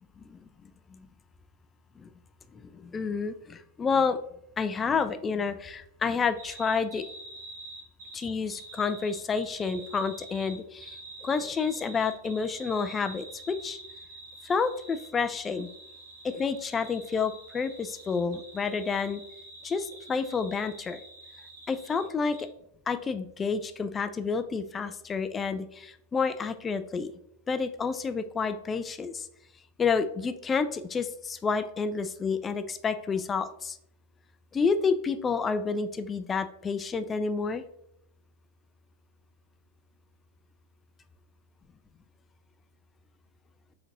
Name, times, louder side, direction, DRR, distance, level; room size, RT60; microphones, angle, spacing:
voice 1, 2.7-4.2 4.6-7.1 8.1-11.0 11.2-13.8 14.5-15.7 16.2-19.2 19.6-21.0 21.7-22.5 22.9-27.1 27.5-29.2 29.8-33.8 34.5-37.6, left 5 dB, 20° left, 11 dB, 0.3 m, -29 dB
sound 1, 6.4-22.1 22.3-22.4, right 2 dB, 60° right, 1.2 m, -47 dB
5.1 x 3.8 x 2.6 m, 0.76 s
figure-of-eight pair, 90°, 0 cm